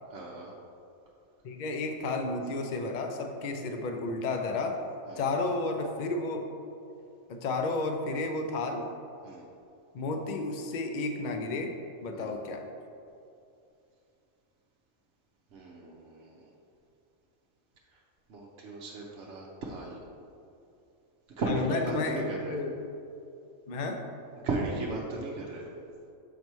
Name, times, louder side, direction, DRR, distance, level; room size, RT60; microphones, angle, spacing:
voice 1, 0.1-0.5 5.1-5.2 9.2-9.4 12.1-12.3 15.5-16.5 17.9-18.0 18.3-20.0 21.4-22.6 24.4-25.7, right 2 dB, 60° right, -3 dB, 0.9 m, -36 dB
voice 2, 1.4-4.8 5.2-6.5 7.3-8.9 9.9-11.8 12.0-12.7 21.5-22.2 22.5-22.8 23.7-24.0, left 3 dB, 75° left, 4 dB, 0.4 m, -32 dB
7.3 x 3.1 x 5.3 m, 2.6 s
omnidirectional pair, 1.4 m